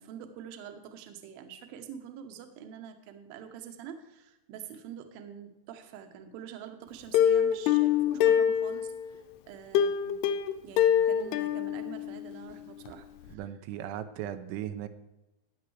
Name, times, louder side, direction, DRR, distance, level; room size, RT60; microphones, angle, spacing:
voice 1, 0.0-10.2 10.6-13.4, right 8 dB, 75° right, 6 dB, 2.3 m, -46 dB
Plucked string instrument, 7.1-9.1 9.8-12.5 12.9-13.0 13.3-13.4, left 9 dB, 85° left, 2.3 m, -25 dB
voice 2, 13.3-14.9, right 11 dB, 90° right, 9 dB, 3.0 m, -37 dB
15.0 x 9.3 x 3.3 m, 0.99 s
omnidirectional pair, 5.3 m